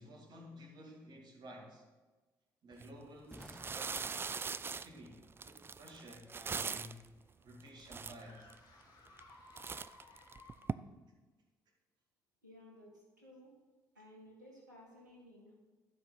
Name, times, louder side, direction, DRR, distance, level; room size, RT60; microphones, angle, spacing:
voice 1, 0.0-1.8 2.6-4.1 4.4-7.0 7.4-8.5, equal, 50° right, 1 dB, 2.1 m, -53 dB
sound 1, 2.7-2.9 3.3-7.1 7.6-7.7 7.9-8.6 9.1-9.3 9.6-10.7, right 5 dB, 25° right, 0.4 m, -41 dB
Boom, 3.3-7.1, equal, ahead, 0.8 m, -59 dB
sound 2, 7.0-11.0, left 3 dB, 50° left, 1.8 m, -60 dB
voice 2, 12.4-13.5 13.9-15.5, left 1 dB, 90° right, -2 dB, 1.7 m, -57 dB
12.0 x 5.1 x 5.6 m, 1.3 s
figure-of-eight pair, 45°, 9 cm